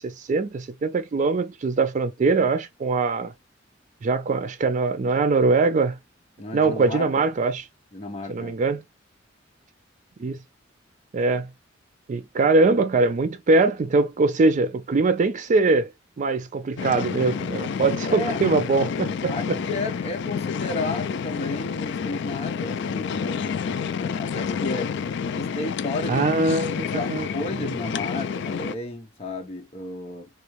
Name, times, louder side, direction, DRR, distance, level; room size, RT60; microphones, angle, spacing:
voice 1, 0.0-3.3 4.0-6.0 6.5-7.6 8.3-8.8 10.2-10.4 11.1-11.5 12.1-15.9 16.2-19.6 26.1-27.3, right 3 dB, 40° right, 0.3 m, -22 dB
voice 2, 6.4-7.3 7.9-8.6 18.1-18.4 19.3-24.9 25.3-26.3 26.9-30.3, left 2 dB, 30° left, 0.7 m, -33 dB
sound 1, 16.8-28.7, left 6 dB, 60° left, 0.3 m, -29 dB
3.5 x 2.5 x 3.0 m
head